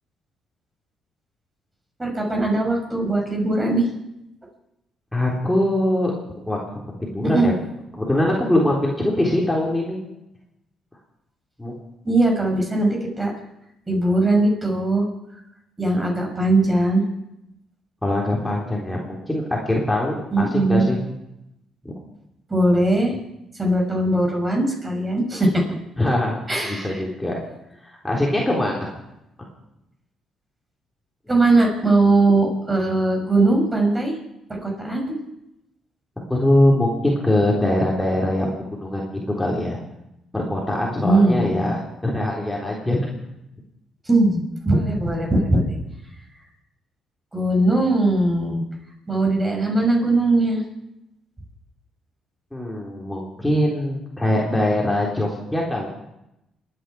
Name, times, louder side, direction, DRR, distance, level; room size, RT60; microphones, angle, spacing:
voice 1, 2.0-3.9 7.3-7.5 12.0-13.3 13.9-15.1 15.8-17.0 20.3-20.9 22.5-23.1 23.6-25.6 26.5-27.0 31.3-34.2 34.5-35.2 41.0-41.7 44.1-45.8 47.3-48.6 49.1-50.6, right 2 dB, 20° right, 1 dB, 6.1 m, -20 dB
voice 2, 5.1-6.1 6.5-6.6 7.0-7.5 7.9-10.0 11.6-11.8 18.0-21.0 21.8-21.9 26.0-26.4 26.6-27.4 27.8-28.9 36.3-38.5 38.8-39.8 40.3-43.1 52.5-55.9, left 1 dB, 10° left, -3 dB, 3.7 m, -22 dB
29.0 x 10.0 x 4.8 m, 0.87 s
supercardioid pair, 65°, 0 cm